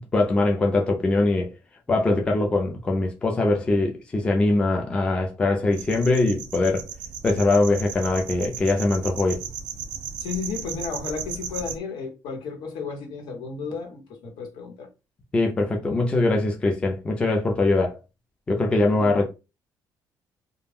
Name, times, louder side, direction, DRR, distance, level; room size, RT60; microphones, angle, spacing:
voice 1, 0.1-1.5 1.9-6.8 7.2-9.4 15.3-17.9 18.5-19.3, left 2 dB, 15° left, 0.4 m, -22 dB
sound 1, 5.7-11.8, right 7 dB, 90° right, 0.4 m, -36 dB
voice 2, 10.2-14.9 18.9-19.2, left 5 dB, 70° left, 1.1 m, -33 dB
2.3 x 2.1 x 3.4 m
cardioid pair, 180°, 7 cm